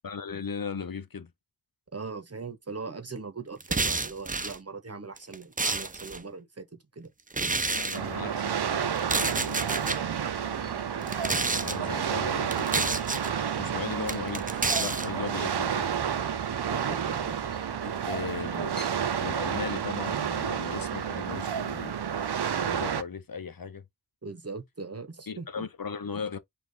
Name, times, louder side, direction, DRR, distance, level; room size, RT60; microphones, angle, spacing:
voice 1, 0.0-1.3 7.7-9.9 11.6-13.0 13.6-14.5 14.8-15.9 18.1-18.8 19.2-22.0 22.6-23.8 25.3-26.4, left 6 dB, 60° left, 0.8 m, -37 dB
voice 2, 1.9-7.1 11.6-12.0 15.1-15.2 16.7-17.4 17.8-17.9 24.2-25.7, right 4 dB, 40° right, 0.9 m, -40 dB
sound 1, 3.6-4.6 5.2-6.2 7.3-8.0 9.0-10.0 11.0-11.8 12.5-13.3 14.1-15.1, right 3 dB, 20° right, 0.5 m, -29 dB
sound 2, 7.9-19.5, equal, ahead, 0.9 m, -50 dB
sound 3, 7.9-23.0, right 8 dB, 85° right, 0.6 m, -30 dB
5.2 x 2.5 x 3.8 m
wide cardioid pair, 50°, 38 cm